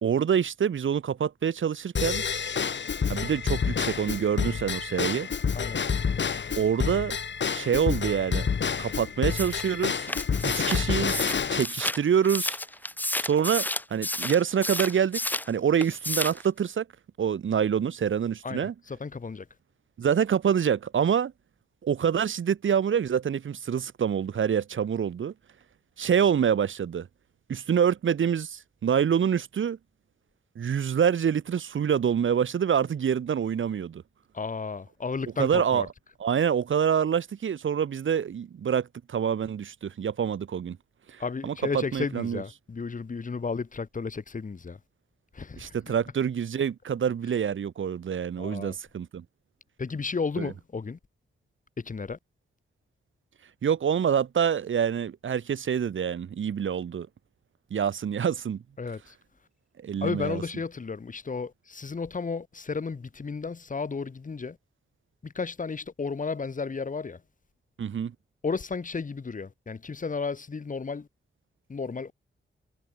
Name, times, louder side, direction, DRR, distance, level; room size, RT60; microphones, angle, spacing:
voice 1, 0.0-2.2 3.1-5.3 6.5-7.2 7.5-8.5 8.8-10.1 10.4-12.6 13.2-16.9 17.2-18.7 20.0-21.3 21.8-25.3 26.0-27.1 27.5-29.8 30.5-34.0 35.4-35.8 36.2-40.8 41.1-42.4 45.6-49.2 50.4-50.5 53.6-57.1 57.7-58.6 59.8-60.4 67.8-68.1, right 8 dB, 75° right, 1.4 m, -26 dB
Drum kit / Drum / Bell, 2.0-11.6, left 6 dB, 65° left, 3.4 m, -28 dB
sound 1, 9.3-15.5 15.8-16.5, left 1 dB, 10° left, 0.7 m, -32 dB
voice 2, 18.4-19.5 34.3-35.9 41.2-44.8 45.3-45.9 48.4-48.8 49.8-51.0 51.8-52.2 58.8-59.2 60.0-64.6 65.2-67.2 68.4-71.1 71.7-72.1, left 4 dB, 40° left, 1.8 m, -33 dB
wide cardioid pair, 110°, 20 cm